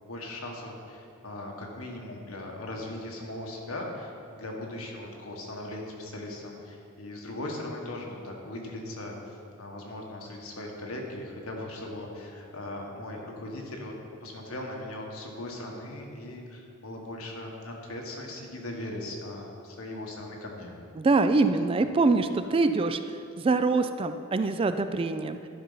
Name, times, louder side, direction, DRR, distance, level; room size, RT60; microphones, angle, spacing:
voice 1, 0.0-9.2 9.6-13.9 14.2-20.7, left 1 dB, 90° left, 0 dB, 1.5 m, -39 dB
voice 2, 21.0-23.0 23.4-25.4, right 3 dB, 25° right, 10 dB, 0.3 m, -24 dB
11.0 x 5.3 x 5.7 m, 2.6 s
head